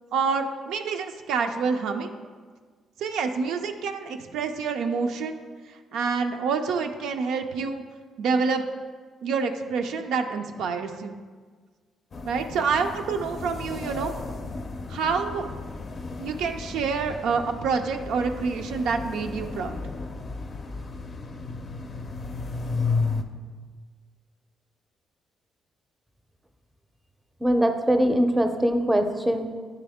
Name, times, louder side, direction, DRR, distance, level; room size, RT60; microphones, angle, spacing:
voice 1, 0.1-2.1 3.0-5.4 5.9-7.8 8.2-8.6 9.2-11.2 12.3-14.1 14.9-15.5 16.2-19.8, right 5 dB, 85° right, 5 dB, 0.4 m, -27 dB
sound 1, 12.1-23.2, left 4 dB, 45° left, 0.5 m, -33 dB
voice 2, 27.4-29.5, equal, 10° right, 6 dB, 0.5 m, -22 dB
9.3 x 3.4 x 3.5 m, 1.5 s
cardioid pair, 90°, 0 cm